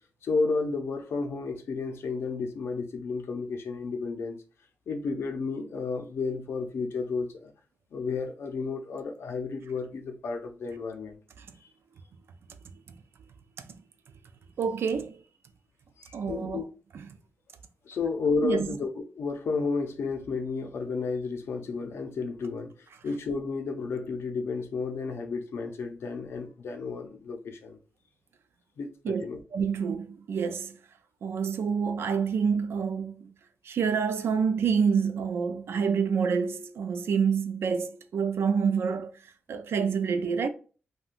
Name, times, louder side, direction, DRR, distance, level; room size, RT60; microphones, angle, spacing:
voice 1, 0.2-4.4 4.9-7.5 7.9-11.2 11.6-11.7 16.0-16.7 17.9-22.7 23.0-27.8 28.8-29.4, left 4 dB, 90° left, 0.5 m, -32 dB
voice 2, 14.6-15.2 16.1-16.6 16.9-17.1 18.4-18.7 29.0-29.2 29.5-30.8 31.2-33.3 33.6-39.1 39.5-40.5, right 6 dB, 75° right, 0.4 m, -27 dB
2.5 x 2.2 x 3.5 m
wide cardioid pair, 180°, 4 cm